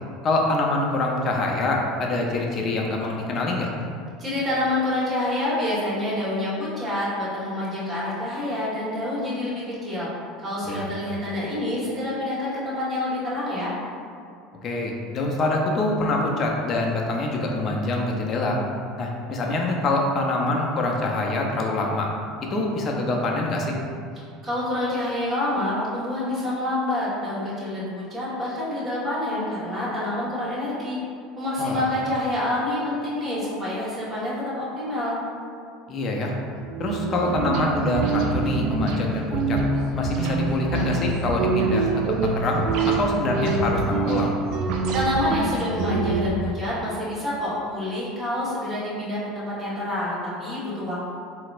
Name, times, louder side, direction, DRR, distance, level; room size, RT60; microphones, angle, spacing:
voice 1, 0.2-3.7 10.6-10.9 14.6-18.6 19.0-22.1 22.5-23.8 31.6-31.9 35.9-36.3 36.8-39.6 40.0-44.4, left 2 dB, 40° left, 0 dB, 0.5 m, -25 dB
voice 2, 4.2-10.1 10.4-13.7 24.4-31.0 31.4-35.2 44.9-51.0, left 1 dB, 30° right, -8 dB, 1.3 m, -27 dB
sound 1, 36.6-46.3, right 3 dB, 65° right, 0.3 m, -25 dB
3.9 x 2.0 x 2.5 m, 2.3 s
supercardioid pair, 95°, 0 cm